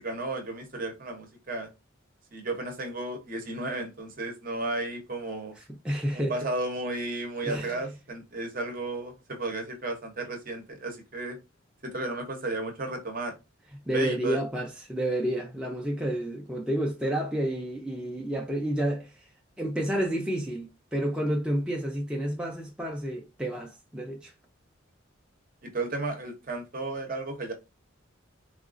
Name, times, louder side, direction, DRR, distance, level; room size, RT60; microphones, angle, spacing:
voice 1, 0.0-1.7 2.3-5.6 6.1-11.4 11.8-13.3 13.9-14.4 25.6-27.5, right 2 dB, 45° right, 0.8 m, -33 dB
voice 2, 5.6-6.4 7.4-7.8 13.9-19.1 19.6-24.3, right 1 dB, 5° right, 0.5 m, -30 dB
3.9 x 2.3 x 2.5 m
head